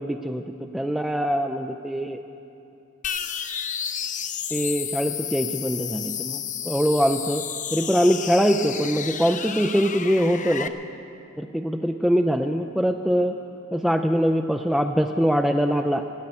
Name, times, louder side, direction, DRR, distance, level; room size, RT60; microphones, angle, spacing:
voice 1, 0.0-2.2 4.5-7.4 7.7-10.7 11.4-13.4 13.7-16.0, equal, ahead, 5 dB, 0.3 m, -23 dB
sound 1, 3.0-10.7, left 8 dB, 35° left, 0.6 m, -31 dB
18.5 x 8.1 x 9.4 m, 2.7 s
head